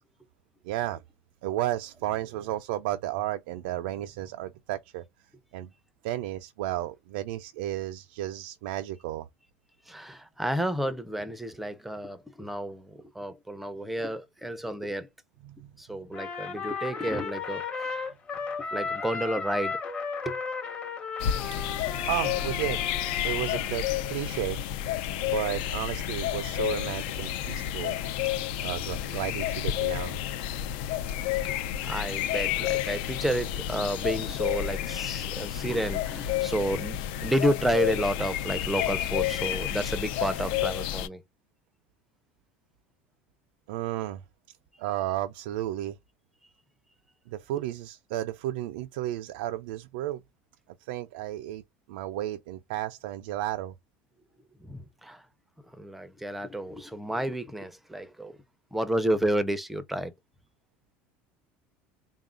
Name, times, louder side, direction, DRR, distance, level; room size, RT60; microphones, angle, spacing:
voice 1, 0.6-1.0 1.4-5.0 5.5-5.7 6.0-9.3 15.4-15.7 21.5-21.6 22.0-22.8 23.2-24.6 25.3-28.0 28.6-30.3 43.7-44.2 44.8-46.0 47.3-50.2 50.9-51.6 51.9-53.7, right 14 dB, 90° right, 0.4 m, -33 dB
voice 2, 9.9-15.1 15.8-18.0 18.7-19.8 20.2-20.4 31.4-41.2 54.6-55.2 55.8-58.4 58.7-60.1, right 1 dB, 5° right, 0.4 m, -31 dB
Trumpet, 16.1-23.7, left 5 dB, 25° left, 0.8 m, -35 dB
sound 1, 21.2-41.1, left 11 dB, 75° left, 0.4 m, -30 dB
3.7 x 2.3 x 3.6 m
cardioid pair, 160°, 5 cm